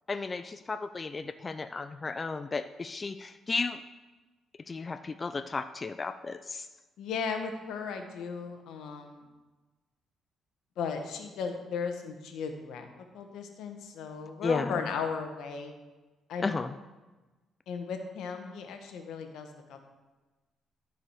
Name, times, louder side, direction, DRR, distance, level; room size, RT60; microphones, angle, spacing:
voice 1, 0.1-3.8 4.7-6.7 14.4-14.8 16.4-16.7, left 4 dB, 30° left, 10 dB, 0.4 m, -34 dB
voice 2, 7.0-9.3 10.8-12.9 13.1-15.7 16.3-16.5 17.7-19.9, left 5 dB, 80° left, 5 dB, 1.2 m, -36 dB
13.0 x 4.9 x 4.9 m, 1.2 s
cardioid pair, 90°, 0 cm